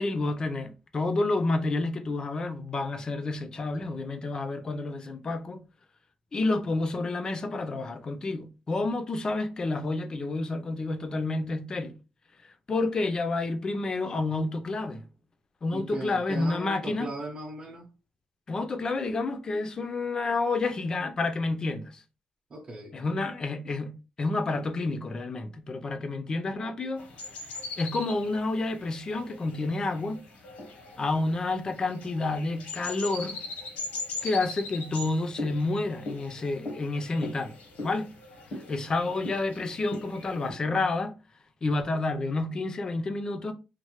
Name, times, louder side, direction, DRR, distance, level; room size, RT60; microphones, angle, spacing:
voice 1, 0.0-5.6 6.3-12.0 12.7-15.0 15.6-17.1 18.5-22.0 22.9-27.1 27.8-30.2 31.0-33.4 34.2-37.6 37.8-38.1 38.7-41.1 41.6-43.5, left 3 dB, 30° left, 0.4 m, -29 dB
voice 2, 15.7-17.9 22.5-23.0, right 2 dB, 30° right, 0.6 m, -38 dB
sound 1, 27.0-40.5, left 2 dB, 80° left, 0.8 m, -40 dB
3.1 x 2.1 x 2.9 m
cardioid pair, 140°, 3 cm